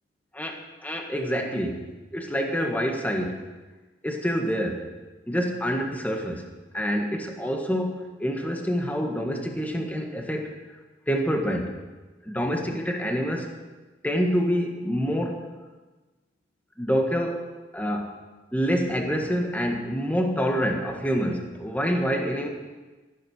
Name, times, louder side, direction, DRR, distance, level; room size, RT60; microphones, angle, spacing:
voice 1, 0.8-1.8 2.1-3.4 4.0-4.9 5.3-6.4 6.7-10.5 11.1-11.7 12.2-13.5 14.0-15.5 16.8-17.5 17.7-18.1 18.5-22.5, equal, 10° left, 2 dB, 1.7 m, -26 dB
13.5 x 12.0 x 6.6 m, 1.2 s
head